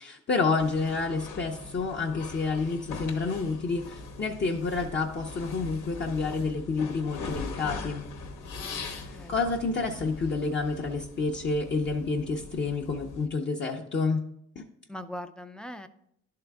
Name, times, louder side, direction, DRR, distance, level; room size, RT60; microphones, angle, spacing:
voice 1, 0.0-8.0 8.9-9.0 9.3-14.2 14.6-14.7, left 4 dB, 40° left, -1 dB, 0.7 m, -29 dB
sound 1, 0.6-13.3, left 3 dB, 85° left, 1.1 m, -41 dB
voice 2, 8.6-9.4 14.9-15.9, left 1 dB, 5° left, 10 dB, 0.3 m, -41 dB
11.0 x 3.8 x 3.4 m, 0.74 s
cardioid pair, 90°, 30 cm